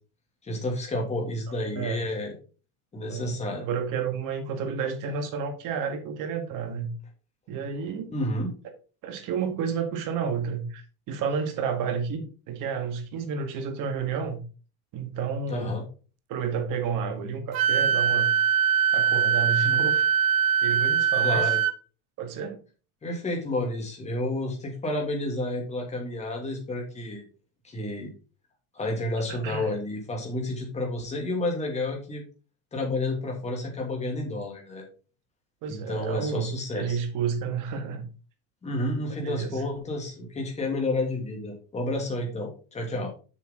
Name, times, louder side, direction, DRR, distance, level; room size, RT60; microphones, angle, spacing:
voice 1, 0.4-2.3 2.9-3.7 8.1-8.5 15.5-15.9 21.2-21.6 23.0-27.2 27.6-28.1 28.7-32.2 32.7-34.8 35.7-37.0 38.6-43.1, left 1 dB, 15° left, 0 dB, 2.5 m, -30 dB
voice 2, 1.8-2.1 3.1-3.3 3.6-6.9 7.5-8.1 9.0-14.4 14.9-15.7 16.3-18.3 18.9-20.1 20.6-21.5 22.2-22.6 29.3-29.7 35.6-38.1 39.2-39.6, right 6 dB, 45° right, 5 dB, 1.9 m, -31 dB
Wind instrument woodwind instrument, 17.5-21.7, right 8 dB, 65° right, 0.9 m, -22 dB
7.1 x 6.9 x 3.8 m, 0.36 s
cardioid pair, 160°, 44 cm